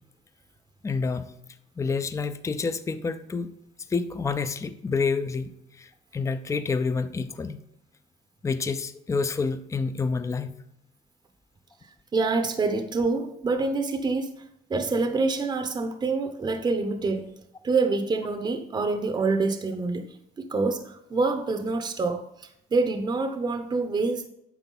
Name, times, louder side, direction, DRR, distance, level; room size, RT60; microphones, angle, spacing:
voice 1, 0.8-1.4 1.8-3.5 3.9-7.6 8.4-10.5, left 4 dB, 20° left, 0.5 m, -28 dB
voice 2, 12.1-14.4 14.7-17.3 17.6-24.3, right 3 dB, 25° right, 0.8 m, -26 dB
9.2 x 5.8 x 3.9 m
cardioid pair, 110°, 17 cm